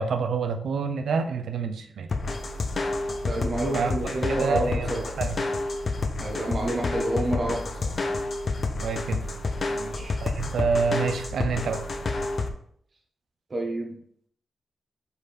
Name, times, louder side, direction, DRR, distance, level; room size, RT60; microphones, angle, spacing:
voice 1, 0.0-2.1 3.7-5.4 8.8-9.2 10.2-11.8, right 5 dB, 80° right, 7 dB, 0.7 m, -28 dB
sound 1, 2.1-12.5, left 3 dB, 45° left, 0.7 m, -29 dB
voice 2, 3.2-5.0 6.2-8.0 9.7-10.2 13.5-13.9, right 1 dB, 40° right, -1 dB, 1.4 m, -29 dB
5.2 x 5.0 x 4.2 m, 0.63 s
cardioid pair, 100°, 0 cm